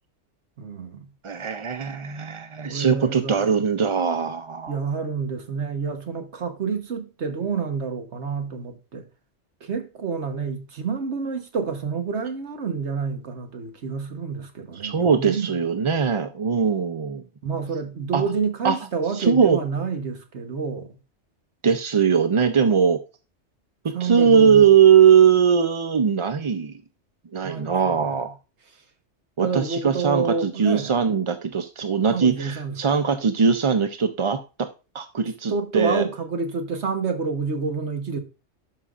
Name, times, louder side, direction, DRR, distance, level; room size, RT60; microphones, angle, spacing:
voice 1, 0.6-1.1 2.6-3.5 4.7-9.0 9.6-15.5 17.4-21.0 23.9-24.7 27.4-28.2 29.4-30.9 32.1-32.8 35.5-38.2, right 5 dB, 70° right, 1.4 m, -28 dB
voice 2, 1.2-4.8 14.7-17.2 18.1-18.2 18.6-18.8 19.1-19.6 21.6-23.0 23.8-26.8 27.3-28.3 29.4-34.7 34.9-36.0, right 7 dB, 45° right, 0.4 m, -20 dB
12.0 x 5.6 x 2.4 m
omnidirectional pair, 1.2 m